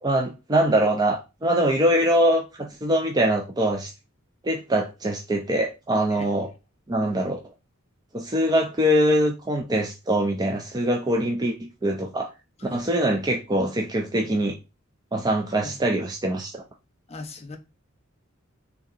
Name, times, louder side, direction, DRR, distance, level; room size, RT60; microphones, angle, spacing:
voice 1, 0.0-3.9 4.4-6.5 6.9-7.4 8.1-12.3 12.7-14.6 15.1-16.6, right 1 dB, 20° right, 0.5 m, -23 dB
voice 2, 17.1-17.6, left 3 dB, 30° left, 0.7 m, -39 dB
3.4 x 2.8 x 3.9 m
head